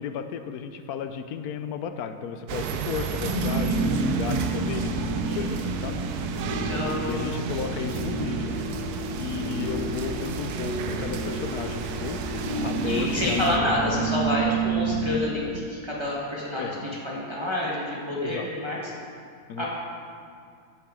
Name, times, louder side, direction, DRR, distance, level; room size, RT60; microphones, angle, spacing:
voice 1, 0.0-5.0 5.3-6.0 7.1-8.6 9.2-12.2 12.6-13.5 13.9-14.0 16.6-17.0 18.2-18.5 19.5-19.7, left 7 dB, 75° left, 9 dB, 1.1 m, -34 dB
sound 1, 2.5-13.6, right 6 dB, 80° right, 1.2 m, -33 dB
sound 2, 3.1-15.1, right 2 dB, 35° left, 3.3 m, -30 dB
voice 2, 6.4-7.3 12.8-16.7 17.0-18.8 19.6-19.7, left 1 dB, 20° right, -6 dB, 1.5 m, -28 dB
15.0 x 7.0 x 3.7 m, 2.3 s
omnidirectional pair, 1.7 m